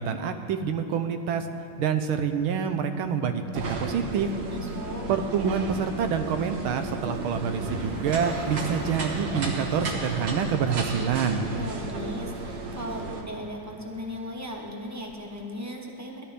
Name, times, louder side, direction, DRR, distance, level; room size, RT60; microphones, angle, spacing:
voice 1, 0.0-1.5 1.8-4.3 5.1-11.5, right 6 dB, 75° right, 7 dB, 1.5 m, -27 dB
sound 1, 3.5-13.2, right 3 dB, 55° right, 1.7 m, -34 dB
voice 2, 4.5-5.0 11.5-16.2, left 1 dB, 20° right, 0 dB, 0.4 m, -37 dB
Car passing by, 6.1-15.4, left 1 dB, 5° right, 2.3 m, -47 dB
18.0 x 13.0 x 3.4 m, 2.5 s
omnidirectional pair, 2.3 m